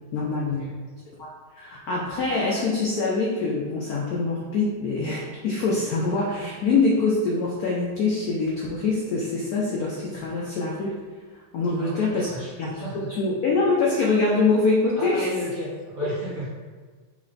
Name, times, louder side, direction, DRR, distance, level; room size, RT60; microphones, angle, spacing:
voice 1, 0.1-0.6 1.2-1.3 1.6-11.0 11.5-12.3 12.6-15.3, left 3 dB, 80° left, -3 dB, 0.8 m, -24 dB
voice 2, 11.8-13.1 15.0-16.5, equal, 35° right, -10 dB, 1.7 m, -34 dB
3.4 x 3.2 x 3.9 m, 1.4 s
omnidirectional pair, 2.3 m